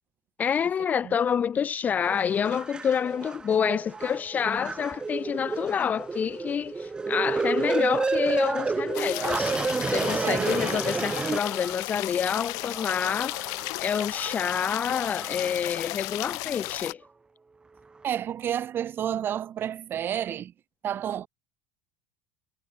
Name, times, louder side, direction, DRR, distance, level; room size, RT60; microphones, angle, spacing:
voice 1, 0.4-13.4 13.8-17.0, left 7 dB, 25° left, 0.6 m, -28 dB
sound 1, 2.1-12.0 12.6-15.6 16.2-16.3, right 4 dB, 15° right, 0.9 m, -31 dB
sound 2, 8.9-16.9, left 29 dB, 60° left, 5.7 m, -34 dB
voice 2, 18.0-20.5 20.8-21.3, right 10 dB, 35° right, 2.9 m, -30 dB
supercardioid pair, 145°, 7 cm